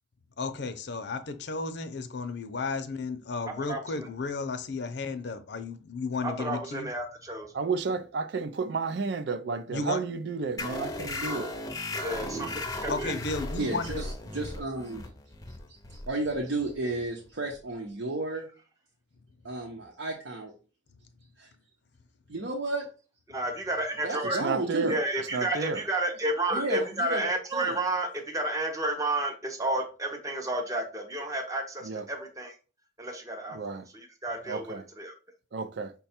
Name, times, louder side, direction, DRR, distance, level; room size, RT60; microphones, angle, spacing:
voice 1, 0.4-6.9 9.7-10.0 12.9-14.0, left 3 dB, 65° left, 0.6 m, -33 dB
voice 2, 3.5-3.8 6.2-7.5 11.9-12.5 12.8-13.1 23.3-24.4 24.9-32.6 33.0-35.1, right 1 dB, 20° right, 0.6 m, -31 dB
voice 3, 7.6-11.5 12.2-12.5 24.4-25.0 25.3-25.8 31.8-32.0 33.5-33.8 34.5-34.8 35.5-35.9, right 4 dB, 60° right, 0.4 m, -32 dB
sound 1, 10.6-17.7, left 1 dB, 20° left, 0.6 m, -37 dB
voice 4, 13.6-15.1 15.5-18.5 19.4-20.5 21.4-21.5 22.3-22.9 24.0-25.0 26.5-27.2 27.5-27.8, right 2 dB, 80° right, 0.8 m, -33 dB
5.6 x 2.3 x 4.2 m
head